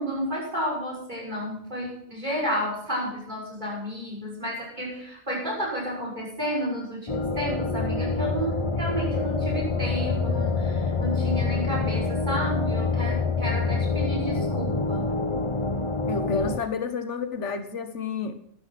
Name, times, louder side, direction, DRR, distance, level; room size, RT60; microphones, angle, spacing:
voice 1, 0.0-15.2, equal, 40° right, -3 dB, 6.7 m, -31 dB
sound 1, 7.1-16.6, left 4 dB, 30° left, 0.8 m, -26 dB
voice 2, 16.1-18.3, left 5 dB, 80° left, 9 dB, 1.5 m, -30 dB
12.0 x 12.0 x 5.9 m, 0.70 s
omnidirectional pair, 1.2 m